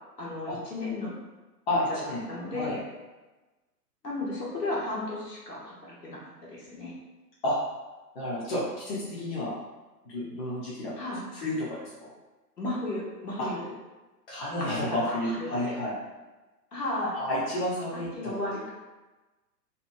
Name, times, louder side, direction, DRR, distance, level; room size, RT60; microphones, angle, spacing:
voice 1, 0.2-1.1 1.9-2.8 4.0-6.2 6.5-6.9 11.0-11.2 12.6-13.7 14.9-15.7 16.7-17.1 17.9-18.7, left 2 dB, 75° left, -6 dB, 1.2 m, -34 dB
voice 2, 1.7-2.2 2.5-2.7 7.4-7.6 8.1-9.5 10.0-10.9 11.3-11.9 13.4-13.5 14.3-15.9 17.1-18.3, left 1 dB, 40° left, -7 dB, 0.7 m, -30 dB
2.8 x 2.5 x 2.2 m, 1.1 s
figure-of-eight pair, 120°, 49 cm